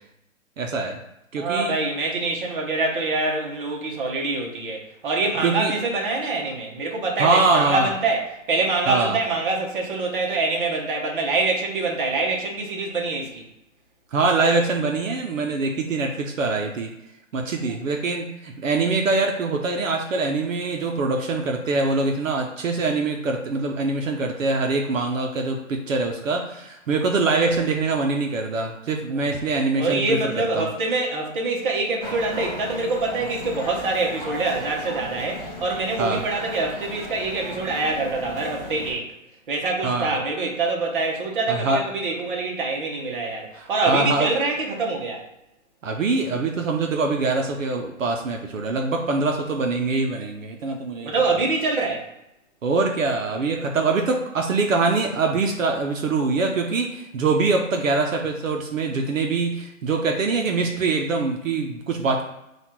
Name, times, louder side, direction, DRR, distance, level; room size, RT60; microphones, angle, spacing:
voice 1, 0.6-1.0 1.3-1.7 5.4-5.7 7.2-7.9 8.9-9.2 14.1-16.9 17.3-30.2 30.5-30.7 36.0-36.2 39.8-40.1 41.5-41.8 43.5-44.3 45.8-51.1 52.6-62.2, right 3 dB, 70° right, 2 dB, 0.8 m, -23 dB
voice 2, 1.4-13.4 17.6-17.8 29.1-29.4 29.8-39.1 39.5-45.2 51.0-52.1, right 3 dB, 40° right, -1 dB, 1.1 m, -25 dB
sound 1, 32.0-38.9, left 1 dB, ahead, 0.7 m, -36 dB
4.1 x 2.5 x 4.3 m, 0.90 s
hypercardioid pair, 160°, 40 cm